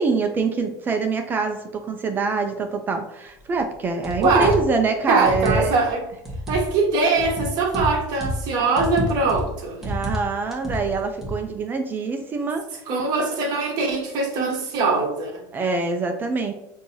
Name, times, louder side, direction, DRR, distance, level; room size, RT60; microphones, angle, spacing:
voice 1, 0.0-5.8 9.8-12.6 15.5-16.5, right 4 dB, 20° right, 5 dB, 0.4 m, -25 dB
sound 1, 4.0-4.7 5.2-5.9 6.2-6.7 7.2-8.5 8.8-9.5 9.8-10.2 10.5-11.4, equal, 5° right, 1.2 m, -28 dB
voice 2, 4.2-4.6 5.1-6.0 6.5-9.8 12.9-15.4, right 3 dB, 45° right, 1 dB, 1.1 m, -22 dB
6.2 x 2.7 x 2.7 m, 0.88 s
supercardioid pair, 150°, 9 cm